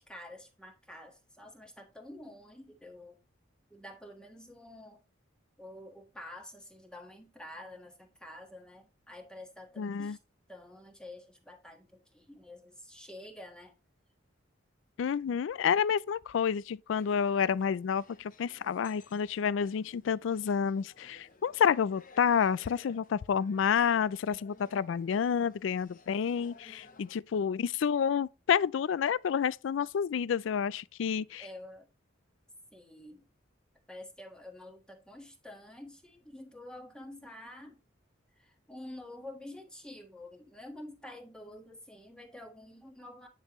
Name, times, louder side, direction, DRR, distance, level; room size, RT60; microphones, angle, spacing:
voice 1, 0.0-3.2 3.7-5.0 5.6-10.2 10.5-13.7 31.4-31.9 32.7-33.2 33.9-37.8 38.4-43.3, left 1 dB, 5° left, 1.4 m, -48 dB
voice 2, 9.8-10.2 15.0-31.5, left 7 dB, 70° left, 0.3 m, -29 dB
sound 1, 17.0-27.1, left 4 dB, 45° left, 1.0 m, -57 dB
9.8 x 5.5 x 3.0 m
head